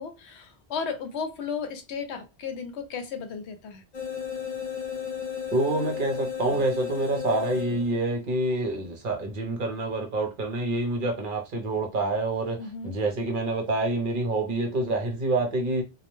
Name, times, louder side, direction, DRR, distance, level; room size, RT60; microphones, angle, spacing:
voice 1, 0.0-3.8 12.6-12.9, left 6 dB, 75° left, 0.8 m, -34 dB
sound 1, 3.9-8.1, left 7 dB, 45° left, 0.7 m, -34 dB
voice 2, 5.5-12.6 12.8-15.8, right 2 dB, 55° right, 0.7 m, -27 dB
2.2 x 2.1 x 3.0 m
omnidirectional pair, 1.2 m